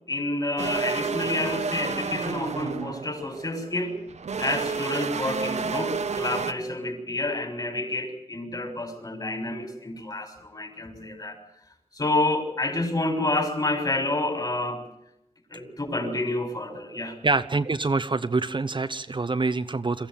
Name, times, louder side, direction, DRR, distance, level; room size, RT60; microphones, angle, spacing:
voice 1, 0.1-4.0 4.4-11.4 11.9-14.8 15.5-17.2, left 2 dB, 35° left, 5 dB, 6.2 m, -29 dB
sound 1, 0.6-6.5, right 5 dB, 70° right, 1.1 m, -30 dB
voice 2, 17.2-20.1, right 3 dB, 40° right, 9 dB, 1.0 m, -26 dB
23.0 x 14.5 x 9.1 m, 0.80 s
wide cardioid pair, 70°, 12 cm